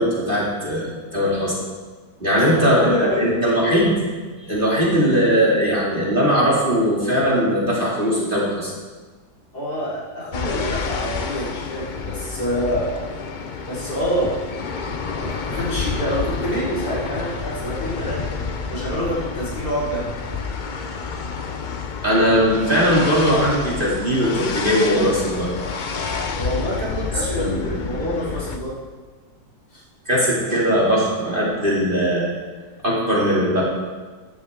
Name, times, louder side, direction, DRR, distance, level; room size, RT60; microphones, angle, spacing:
voice 1, 0.0-1.5 2.2-3.9 4.4-8.7 22.0-25.5 27.4-27.8 28.2-28.3 30.1-32.3 32.8-33.6, equal, 30° right, -6 dB, 2.8 m, -19 dB
voice 2, 2.3-3.4 9.5-13.0 13.7-14.3 15.2-20.1 26.3-28.7 29.7-29.8, equal, 60° left, -9 dB, 4.9 m, -27 dB
sound 1, 10.3-28.6, left 5 dB, 75° left, 0.4 m, -29 dB
14.0 x 11.5 x 3.7 m, 1.4 s
omnidirectional pair, 1.9 m